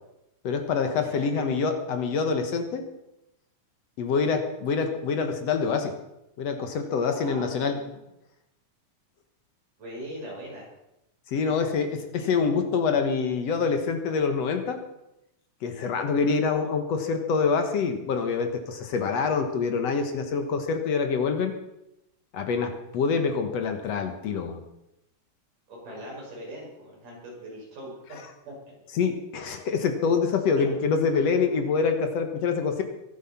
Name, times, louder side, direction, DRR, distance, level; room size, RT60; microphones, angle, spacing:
voice 1, 0.4-2.8 4.0-5.9 6.4-7.8 11.3-14.8 15.6-21.5 22.3-24.6 28.9-32.8, left 5 dB, 60° left, 6 dB, 2.2 m, -26 dB
voice 2, 7.1-8.0 9.8-10.7 12.2-12.3 25.7-27.9 28.4-28.7 30.5-30.6, equal, 90° right, -5 dB, 8.7 m, -41 dB
23.5 x 8.0 x 5.8 m, 0.88 s
omnidirectional pair, 3.6 m